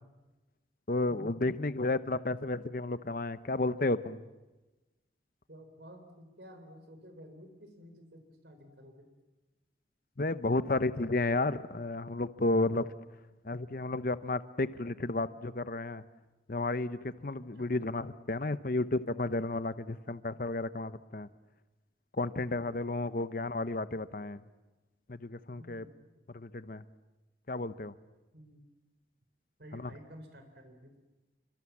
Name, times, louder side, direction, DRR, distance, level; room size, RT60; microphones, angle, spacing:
voice 1, 0.9-4.2 10.2-12.9 13.4-16.0 16.5-21.3 22.2-24.4 25.1-25.9 26.3-26.8 27.5-27.9 29.7-29.9, left 2 dB, 50° left, 13 dB, 0.8 m, -32 dB
voice 2, 5.5-9.1 17.4-17.7 25.6-25.9 28.3-28.6 29.6-30.9, equal, 65° right, 6 dB, 4.2 m, -52 dB
28.5 x 25.5 x 7.3 m, 1.1 s
head